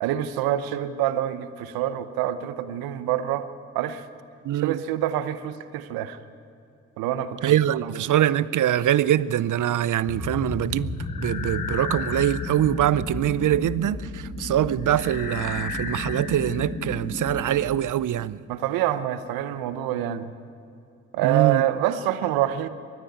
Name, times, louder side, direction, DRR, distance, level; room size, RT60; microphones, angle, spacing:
voice 1, 0.0-3.5 3.7-4.1 4.5-6.2 7.0-8.0 18.5-20.3 21.1-22.7, right 12 dB, 85° right, 0.9 m, -26 dB
voice 2, 4.4-4.8 7.4-18.4 21.2-21.7, right 11 dB, 60° right, 0.6 m, -23 dB
sound 1, 10.1-17.5, left 3 dB, 70° left, 3.2 m, -32 dB
20.5 x 13.5 x 9.5 m
hypercardioid pair, 40°, 35 cm